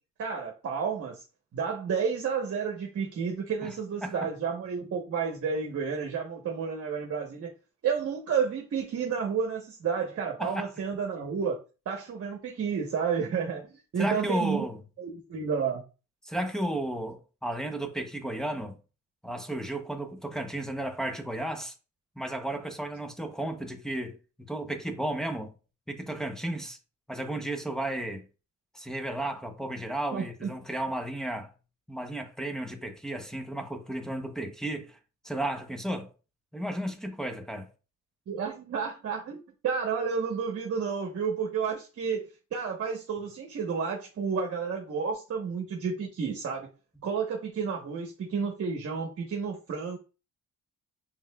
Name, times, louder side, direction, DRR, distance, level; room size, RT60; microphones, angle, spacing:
voice 1, 0.2-1.2 1.5-7.5 7.8-13.7 13.9-14.7 15.0-15.8 30.1-30.5 38.3-46.7 47.0-50.0, right 6 dB, 50° right, 1.0 m, -31 dB
voice 2, 14.0-14.8 16.2-18.8 19.2-21.7 22.2-24.2 24.5-25.5 25.9-26.8 27.1-28.2 28.7-31.5 31.9-35.0 35.2-36.1 36.5-37.7, right 1 dB, ahead, 0.8 m, -33 dB
5.4 x 3.5 x 2.3 m
cardioid pair, 90°, 30 cm